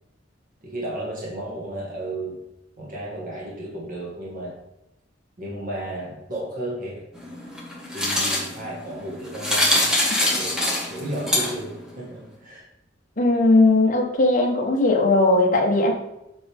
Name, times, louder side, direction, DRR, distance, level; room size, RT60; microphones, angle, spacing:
voice 1, 0.6-2.4 2.8-4.6 5.4-7.0 7.9-9.8 10.4-12.6, right 1 dB, 45° right, -4 dB, 1.6 m, -33 dB
sound 1, 7.1-11.8, left 1 dB, 5° right, 1.6 m, -24 dB
voice 2, 13.2-15.9, left 2 dB, 40° left, 1 dB, 1.2 m, -18 dB
7.7 x 5.3 x 3.5 m, 0.89 s
head